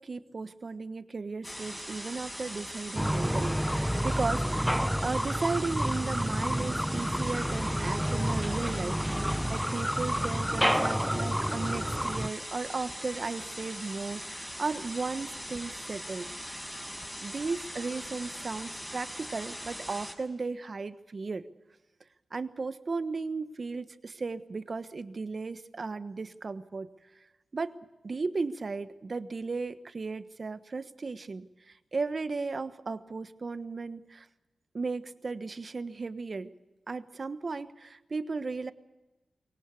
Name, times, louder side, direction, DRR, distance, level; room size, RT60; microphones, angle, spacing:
voice 1, 0.0-16.6 17.2-21.4 22.3-26.9 27.5-27.8 28.0-34.3 34.7-36.5 36.9-38.7, right 4 dB, 50° right, 12 dB, 1.3 m, -35 dB
sound 1, 1.4-20.1, equal, 10° left, 6.4 m, -41 dB
sound 2, 3.0-12.3, equal, 5° right, 0.7 m, -29 dB
23.0 x 18.0 x 8.3 m, 1.1 s
cardioid pair, 45°, 0 cm